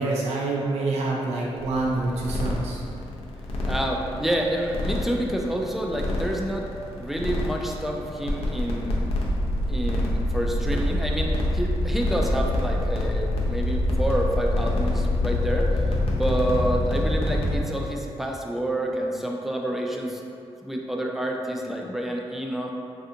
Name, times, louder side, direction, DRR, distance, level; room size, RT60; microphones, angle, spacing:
voice 1, 0.0-2.8, right 2 dB, 90° right, -3 dB, 0.4 m, -26 dB
sound 1, 1.6-17.6, left 1 dB, 65° left, 0.5 m, -26 dB
voice 2, 3.6-6.7 7.0-9.1 9.7-15.8 16.1-20.2 20.6-22.7, right 1 dB, ahead, 0 dB, 0.3 m, -28 dB
3.3 x 2.5 x 2.7 m, 2.6 s
cardioid pair, 100°, 11 cm